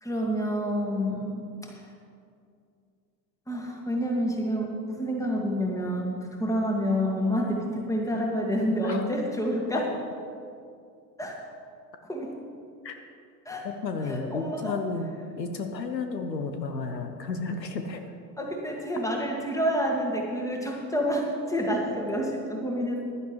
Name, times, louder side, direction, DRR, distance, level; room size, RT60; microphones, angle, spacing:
voice 1, 0.0-1.8 3.5-9.9 11.2-11.4 12.1-12.3 13.5-13.6 14.1-14.7 18.4-23.0, equal, 5° left, 0 dB, 1.9 m, -28 dB
voice 2, 13.6-15.1 15.4-18.0, left 4 dB, 80° left, 6 dB, 0.9 m, -32 dB
15.5 x 10.5 x 3.1 m, 2.4 s
figure-of-eight pair, 75°, 50 cm